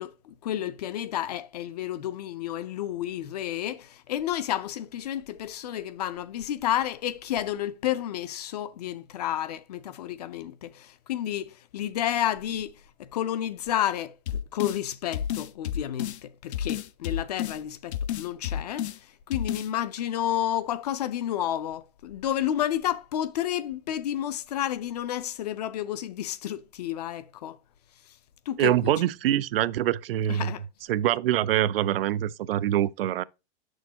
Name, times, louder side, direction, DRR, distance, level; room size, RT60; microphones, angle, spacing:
voice 1, 0.0-12.7 13.0-18.9 19.3-27.6 28.5-28.9 30.3-30.6, left 11 dB, 40° left, 0.4 m, -31 dB
sound 1, 14.3-14.8 15.1-16.2 16.5-17.6 17.9-19.0 19.3-19.7, left 10 dB, 85° left, 0.6 m, -30 dB
voice 2, 28.6-30.5 30.9-33.2, right 12 dB, 60° right, 0.5 m, -24 dB
7.0 x 6.3 x 2.7 m
supercardioid pair, 165°, 32 cm